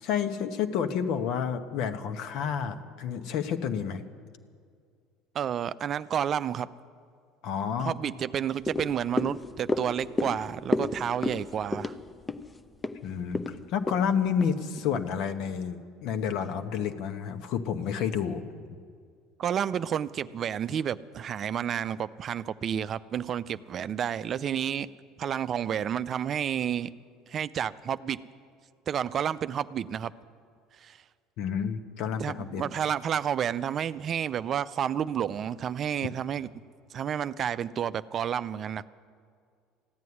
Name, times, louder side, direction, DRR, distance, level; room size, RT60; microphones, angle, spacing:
voice 1, 0.0-4.0 7.4-8.0 13.0-18.4 31.4-32.6, left 7 dB, 65° left, 8 dB, 1.1 m, -30 dB
voice 2, 5.3-6.7 7.8-12.0 19.4-24.9 25.2-26.9 27.3-28.2 28.9-30.1 30.8-31.0 32.2-36.5 36.9-38.8, right 9 dB, 45° right, 14 dB, 0.5 m, -30 dB
sound 1, 8.6-15.1 15.5-15.6, left 2 dB, 20° left, 0.7 m, -33 dB
15.0 x 9.3 x 9.8 m, 2.2 s
hypercardioid pair, 75°, 0 cm